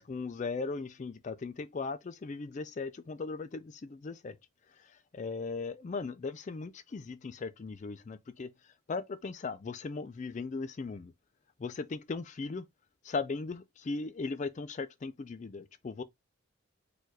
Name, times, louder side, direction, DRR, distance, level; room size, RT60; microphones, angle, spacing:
voice 1, 0.0-4.4 4.8-8.5 8.9-11.1 11.6-12.6 13.0-16.0, left 4 dB, 35° left, 0.3 m, -38 dB
4.5 x 2.1 x 4.6 m
head